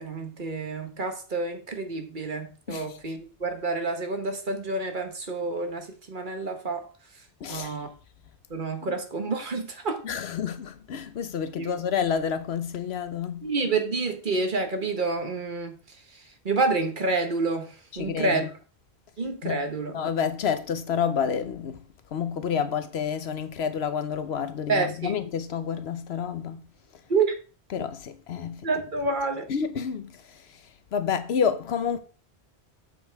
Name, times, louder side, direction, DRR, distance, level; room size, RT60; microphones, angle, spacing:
voice 1, 0.0-6.9 7.5-7.9 8.5-10.0 11.6-11.7 13.4-15.7 16.4-18.4 19.2-19.9 24.7-25.1 27.1-27.3 28.6-29.5, right 3 dB, 50° right, 1.4 m, -28 dB
voice 2, 7.4-7.7 8.8-9.0 10.0-13.5 17.9-18.5 19.4-19.6 19.9-21.8 22.1-26.7 27.7-28.6 29.5-30.1 30.9-32.0, left 7 dB, 75° left, 1.0 m, -29 dB
8.0 x 5.5 x 4.6 m
omnidirectional pair, 1.1 m